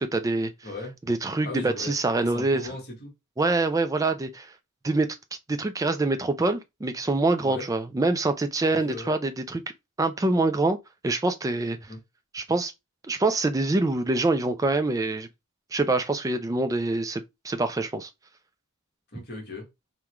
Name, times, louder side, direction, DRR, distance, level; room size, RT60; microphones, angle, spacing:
voice 1, 0.0-0.5 1.1-2.6 3.4-4.5 4.8-5.2 5.5-9.6 10.0-10.8 11.0-11.8 12.3-12.7 13.1-15.3 15.7-18.1, right 2 dB, 15° right, 0.3 m, -25 dB
voice 2, 0.6-0.9 1.4-3.1 7.4-7.7 8.7-9.1 11.9-12.0 19.1-19.7, left 2 dB, 45° left, 1.3 m, -37 dB
3.6 x 2.2 x 3.0 m
head